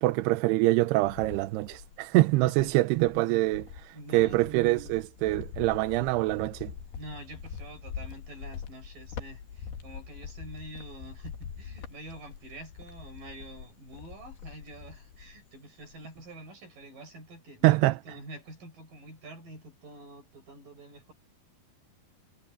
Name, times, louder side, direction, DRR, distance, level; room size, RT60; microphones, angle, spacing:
voice 1, 0.0-6.7 17.6-18.2, right 19 dB, 85° right, 2.7 m, -25 dB
Cricket, 0.5-2.1 2.5-15.5 15.8-16.3, left 7 dB, 75° left, 4.0 m, -44 dB
voice 2, 3.9-4.4 7.0-21.1, right 1 dB, 55° right, 9.5 m, -46 dB
omnidirectional pair, 4.6 m